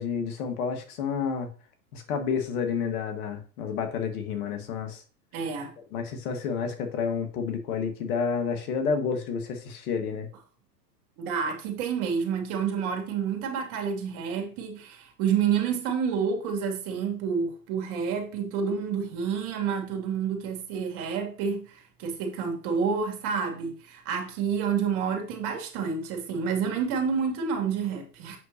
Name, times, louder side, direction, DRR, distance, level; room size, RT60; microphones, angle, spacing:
voice 1, 0.0-1.5 1.9-5.0 5.9-10.3, left 6 dB, 65° left, 1.7 m, -30 dB
voice 2, 5.3-5.7 11.2-28.4, right 6 dB, 45° right, 2.5 m, -29 dB
8.0 x 6.3 x 2.8 m
hypercardioid pair, 115°, 48 cm